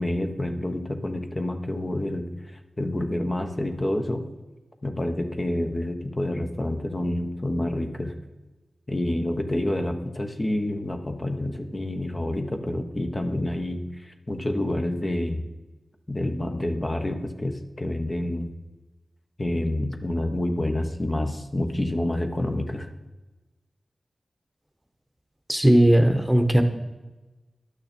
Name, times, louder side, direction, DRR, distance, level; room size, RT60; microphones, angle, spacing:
voice 1, 0.0-4.2 4.8-8.2 8.9-15.4 16.1-18.5 19.4-22.9, left 1 dB, 35° left, 5 dB, 1.1 m, -28 dB
voice 2, 25.5-26.6, right 1 dB, 10° right, 6 dB, 1.1 m, -17 dB
11.0 x 6.4 x 4.4 m, 1.2 s
cardioid pair, 40°, 0 cm